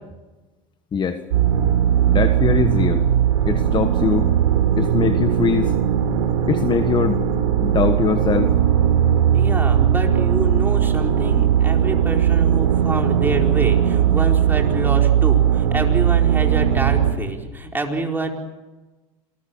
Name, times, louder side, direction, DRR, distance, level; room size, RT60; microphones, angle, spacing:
sound 1, 1.3-17.1, right 9 dB, 85° right, 4.1 m, -18 dB
voice 1, 2.1-3.0 3.5-4.3 4.8-5.7 6.5-7.2 7.6-8.5, left 6 dB, 25° left, 8 dB, 1.5 m, -22 dB
voice 2, 9.3-18.3, right 2 dB, 10° right, 2 dB, 4.5 m, -27 dB
28.0 x 20.5 x 7.2 m, 1.2 s
supercardioid pair, 115°, 17 cm